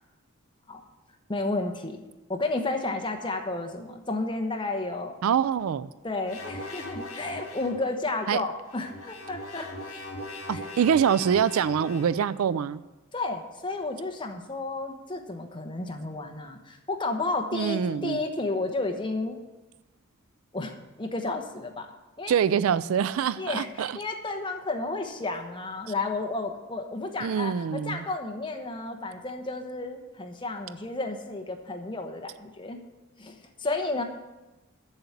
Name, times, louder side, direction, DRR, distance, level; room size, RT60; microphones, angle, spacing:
voice 1, 1.3-2.0 2.3-5.1 6.0-9.7 10.5-10.6 13.1-19.4 20.5-21.9 22.2-22.3 23.4-32.8 33.2-34.0, left 2 dB, 20° left, 4 dB, 1.0 m, -32 dB
voice 2, 5.2-5.9 8.3-8.4 10.5-12.8 17.5-18.2 22.3-23.9 27.2-28.0, right 7 dB, 75° right, 17 dB, 0.3 m, -25 dB
sound 1, 6.3-7.9 8.6-12.3, left 1 dB, 70° left, 2.0 m, -40 dB
7.8 x 7.2 x 8.0 m, 1.1 s
head